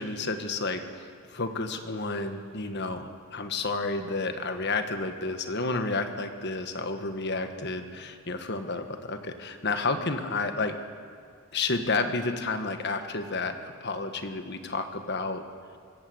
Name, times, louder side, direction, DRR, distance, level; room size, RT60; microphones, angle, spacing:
voice 1, 0.0-10.8 11.5-15.4, left 3 dB, 50° left, 7 dB, 1.5 m, -31 dB
25.0 x 15.0 x 8.0 m, 2.3 s
head